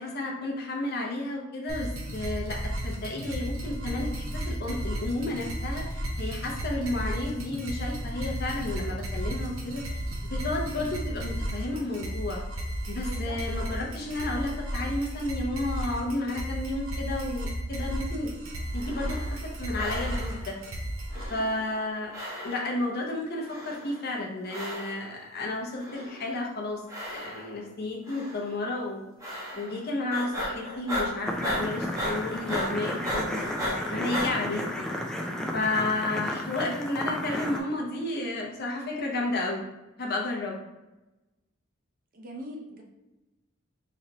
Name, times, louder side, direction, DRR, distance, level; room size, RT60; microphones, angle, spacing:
voice 1, 0.0-9.8 10.3-12.4 12.9-18.3 18.7-20.6 21.3-22.1 22.4-29.1 29.6-34.8 35.5-39.6 40.0-40.6, left 2 dB, 50° left, -1 dB, 0.7 m, -32 dB
sound 1, 1.7-21.3, right 1 dB, 70° right, 0.8 m, -33 dB
voice 2, 13.0-13.4 21.1-21.5 29.5-29.7 36.1-36.3 42.1-42.8, equal, 40° right, 1 dB, 0.6 m, -43 dB
sound 2, 18.7-19.5 19.7-20.5 21.1-21.9 22.1-22.9 23.4-24.1 24.5-25.1 25.7-26.4 26.9-27.7 28.1-28.5 29.2-29.8 30.1-34.3, equal, 15° right, 1.0 m, -35 dB
sound 3, 31.3-37.6, left 1 dB, 5° left, 0.3 m, -33 dB
4.0 x 3.2 x 2.8 m, 1.0 s
head